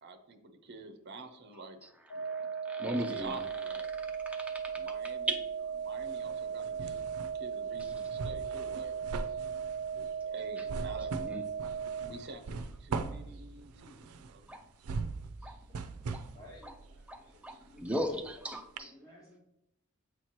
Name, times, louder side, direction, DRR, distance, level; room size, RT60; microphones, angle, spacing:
voice 1, 0.0-1.8 2.1-2.5 2.8-3.9 4.7-5.4 5.8-9.0 9.9-11.3 12.0-14.5 16.4-16.7, right 2 dB, 50° right, 8 dB, 0.7 m, -48 dB
sound 1, 2.1-12.1, right 7 dB, 60° left, 0.5 m, -37 dB
voice 2, 2.2-3.3 3.9-4.6 5.3-5.4 11.1-11.4 14.5-14.6 15.4-15.6 16.1-16.3 16.6-16.7 17.1-18.9, right 1 dB, 5° right, 3 dB, 0.6 m, -37 dB
sound 2, 3.2-4.3 4.6-18.4 18.8-18.9, right 4 dB, 90° right, 0.4 m, -41 dB
voice 3, 16.3-18.1 18.8-19.4, left 1 dB, 15° left, -9 dB, 2.4 m, -55 dB
8.1 x 4.4 x 2.9 m, 0.82 s
head